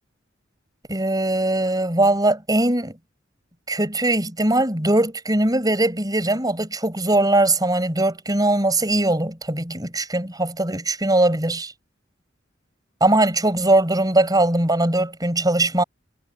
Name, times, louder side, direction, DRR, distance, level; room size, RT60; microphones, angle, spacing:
voice 1, 0.9-2.9 3.7-11.7 13.0-15.8, right 2 dB, 20° right, 6.2 m, -20 dB
head